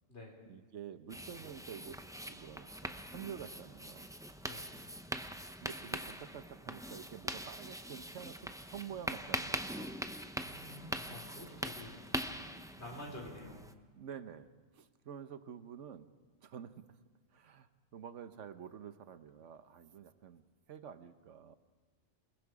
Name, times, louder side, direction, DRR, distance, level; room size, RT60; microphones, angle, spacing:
voice 1, 0.5-2.0 2.3-4.1 5.6-10.0 13.9-16.1 16.4-16.9 17.3-20.4 20.7-21.6, right 8 dB, 70° right, 11 dB, 1.2 m, -49 dB
sound 1, 1.1-13.7, equal, 5° right, 0.5 m, -42 dB
voice 2, 10.4-12.0 12.8-13.6, left 1 dB, 60° left, -2 dB, 5.1 m, -48 dB
28.0 x 20.5 x 4.9 m, 1.3 s
omnidirectional pair, 1.3 m